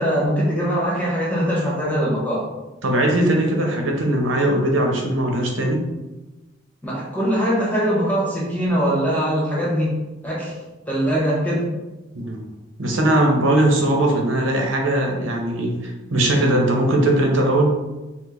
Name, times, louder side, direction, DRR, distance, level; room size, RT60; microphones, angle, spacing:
voice 1, 0.0-2.4 6.8-10.0 10.2-10.6 10.9-11.7, equal, 10° left, -6 dB, 1.1 m, -22 dB
voice 2, 2.8-5.8 12.1-12.5 12.8-17.8, right 1 dB, 90° right, 1 dB, 0.9 m, -20 dB
5.8 x 2.2 x 3.1 m, 1.1 s
head